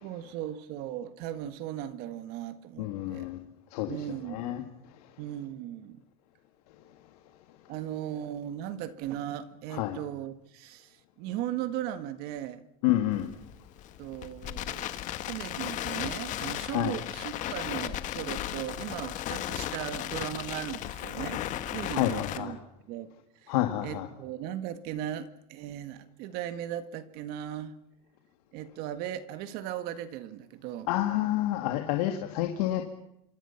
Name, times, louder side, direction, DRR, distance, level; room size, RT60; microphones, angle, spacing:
voice 1, 0.0-3.3 3.9-4.7 5.2-6.0 7.7-12.6 14.0-14.9 15.3-22.6 22.9-23.1 23.4-23.5 23.8-27.7 28.5-30.9, right 11 dB, 50° right, 1.8 m, -37 dB
voice 2, 2.8-3.4 3.7-4.0 4.3-4.6 9.7-10.0 12.8-13.3 16.7-17.0 21.9-22.5 23.5-24.1 30.9-32.8, left 14 dB, 70° left, 2.4 m, -28 dB
Crackle, 13.1-22.4, left 12 dB, 40° left, 1.6 m, -36 dB
27.0 x 24.5 x 5.9 m
supercardioid pair, 160°, 20 cm